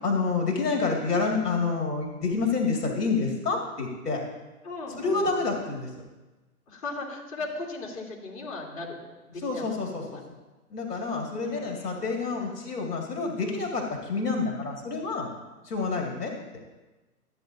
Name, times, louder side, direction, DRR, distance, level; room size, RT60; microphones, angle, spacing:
voice 1, 0.0-4.2 5.0-6.1 9.4-10.2 10.7-15.3 15.6-16.3, left 4 dB, 80° left, -1 dB, 2.2 m, -28 dB
voice 2, 4.6-5.3 6.7-10.2 11.4-12.0, left 3 dB, 60° left, -3 dB, 3.1 m, -38 dB
13.5 x 8.4 x 2.6 m, 1.2 s
hypercardioid pair, 145°, 46 cm